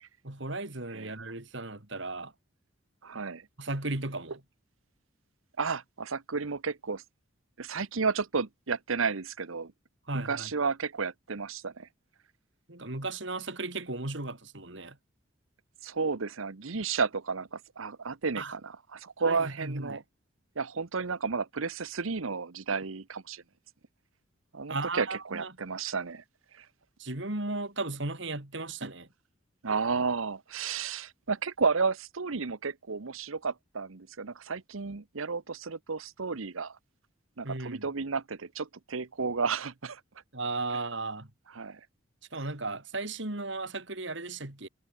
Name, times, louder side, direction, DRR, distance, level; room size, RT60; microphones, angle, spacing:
voice 1, 0.2-2.3 3.6-4.4 10.1-10.5 12.7-15.0 18.4-18.5 19.2-20.0 24.7-25.5 27.0-29.1 37.4-37.9 40.3-41.3 42.3-44.7, right 2 dB, 65° right, 2.9 m, -35 dB
voice 2, 3.0-3.5 5.6-7.0 7.6-9.7 10.3-11.9 15.8-20.0 20.6-23.4 24.5-26.2 26.6-26.7 29.6-36.8 37.4-40.0 41.6-41.8, right 5 dB, 85° right, 1.0 m, -32 dB
head